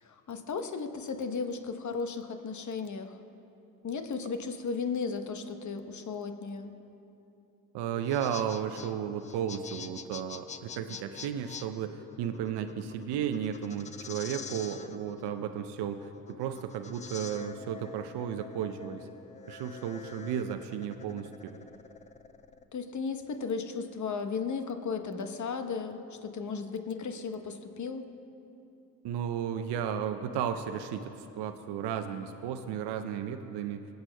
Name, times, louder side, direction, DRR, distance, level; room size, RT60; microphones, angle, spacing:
voice 1, 0.0-3.2 3.8-6.7 22.7-28.1, left 5 dB, 40° left, 7 dB, 1.0 m, -35 dB
voice 2, 7.7-19.1 19.5-21.6 29.0-33.9, right 8 dB, 60° right, 7 dB, 0.7 m, -34 dB
sound 1, 7.9-22.6, left 6 dB, 15° left, 0.3 m, -46 dB
23.0 x 8.1 x 2.3 m, 2.9 s
hypercardioid pair, 50°, 46 cm